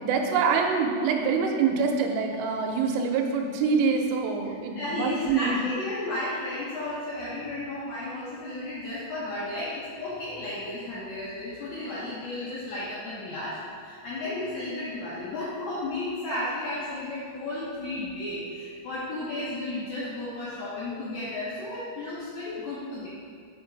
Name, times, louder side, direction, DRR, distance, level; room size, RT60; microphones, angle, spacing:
voice 1, 0.0-5.6, right 5 dB, 90° right, 2 dB, 3.2 m, -25 dB
voice 2, 4.7-23.1, left 2 dB, 80° left, -9 dB, 2.1 m, -33 dB
8.1 x 4.5 x 4.6 m, 2.2 s
omnidirectional pair, 5.6 m